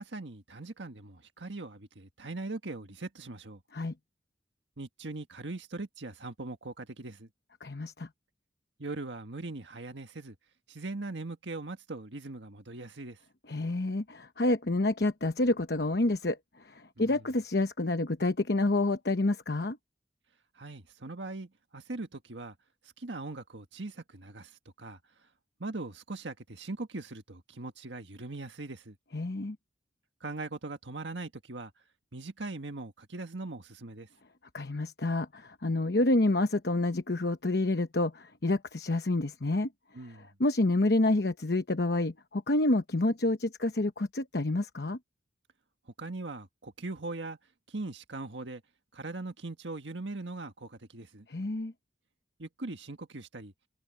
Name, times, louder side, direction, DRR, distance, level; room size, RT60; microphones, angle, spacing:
voice 1, 0.0-3.6 4.8-7.3 8.8-10.3 10.7-13.2 17.0-17.2 20.5-22.5 23.0-25.3 25.6-29.0 30.2-31.7 32.1-34.1 39.9-40.3 46.0-47.4 47.7-48.6 48.9-51.3 52.4-53.5, right 2 dB, 90° right, 1.7 m, -40 dB
voice 2, 7.6-8.1 13.5-16.4 16.6-19.8 29.1-29.6 34.5-39.7 40.4-45.0 51.3-51.7, left 2 dB, 65° left, 1.0 m, -28 dB
head